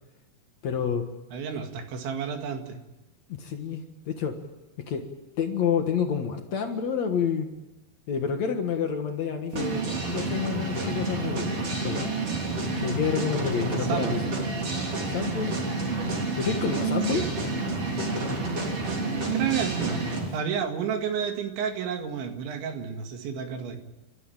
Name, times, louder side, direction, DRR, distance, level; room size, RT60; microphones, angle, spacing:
voice 1, 0.6-1.1 3.3-4.4 4.9-5.1 5.4-7.5 8.1-12.1 12.8-14.2 15.1-15.6 16.3-17.3, left 7 dB, 65° left, 5 dB, 1.7 m, -29 dB
voice 2, 1.3-2.8 13.6-14.2 17.1-17.3 19.3-20.0 20.3-23.8, right 7 dB, 75° right, 5 dB, 4.3 m, -31 dB
sound 1, 9.5-20.3, right 3 dB, 35° right, 3.8 m, -29 dB
29.5 x 13.5 x 8.9 m, 1.0 s
omnidirectional pair, 5.4 m